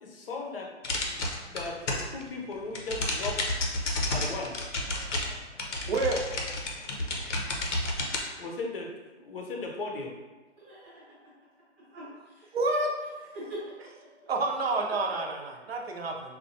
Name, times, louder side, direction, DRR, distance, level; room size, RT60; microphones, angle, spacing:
voice 1, 0.0-0.7 1.5-3.4 4.1-4.5 8.4-8.9 9.2-10.1, left 3 dB, 50° left, 0 dB, 0.6 m, -36 dB
sound 1, 0.8-2.2 2.5-8.2, left 2 dB, 85° left, 0.8 m, -31 dB
voice 2, 5.9-6.2 12.5-12.9 14.3-16.4, right 2 dB, 60° right, 1 dB, 0.6 m, -29 dB
voice 3, 10.6-11.3 11.9-12.5 13.3-14.3 15.1-15.2, equal, 15° right, -10 dB, 0.9 m, -43 dB
4.2 x 2.2 x 2.6 m, 1.2 s
hypercardioid pair, 165°, 35 cm